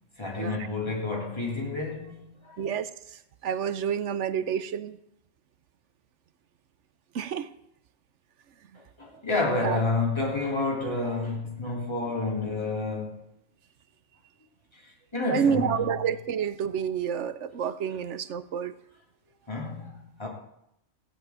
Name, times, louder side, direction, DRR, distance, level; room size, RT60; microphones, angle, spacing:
voice 1, 0.2-2.6 9.0-13.2 14.7-14.8 15.1-15.7 19.5-20.3, left 3 dB, 20° left, 3.8 m, -29 dB
voice 2, 2.6-2.9 3.4-5.0 7.1-7.5 9.6-9.8 15.3-18.7, right 8 dB, 70° right, 1.1 m, -29 dB
16.5 x 5.6 x 8.7 m
omnidirectional pair, 1.3 m